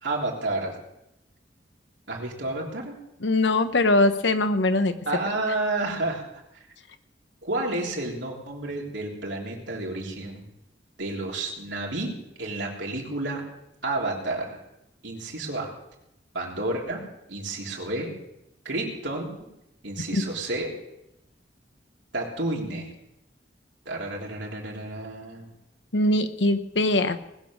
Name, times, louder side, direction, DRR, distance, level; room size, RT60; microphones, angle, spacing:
voice 1, 0.0-0.8 2.1-3.0 5.1-6.2 6.5-6.6 7.4-10.5 11.0-13.4 13.8-14.6 15.0-15.7 16.3-17.0 17.3-18.1 18.7-19.3 19.8-20.8 22.1-22.9 23.9-25.5, right 2 dB, 85° right, -2 dB, 3.4 m, -30 dB
voice 2, 3.2-5.0 20.1-20.2 25.9-27.2, left 2 dB, 85° left, 9 dB, 1.0 m, -22 dB
20.0 x 7.3 x 6.3 m, 0.85 s
head